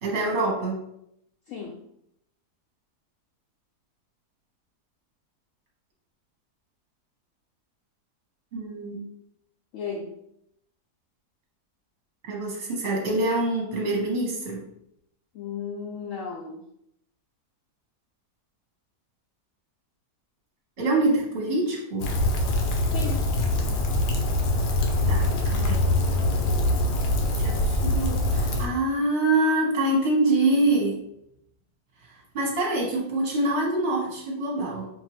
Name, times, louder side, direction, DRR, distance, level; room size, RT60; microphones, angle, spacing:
voice 1, 0.0-0.8 8.5-9.0 12.3-14.6 20.8-22.1 25.1-25.9 27.3-31.0 32.0-34.9, right 2 dB, 40° right, -2 dB, 1.0 m, -25 dB
voice 2, 1.5-1.8 9.7-10.2 15.3-16.6 22.9-23.3, left 5 dB, 70° left, 0 dB, 0.8 m, -35 dB
Rain, 22.0-28.6, left 1 dB, 90° left, 1.3 m, -24 dB
5.1 x 2.7 x 2.9 m, 0.76 s
omnidirectional pair, 1.7 m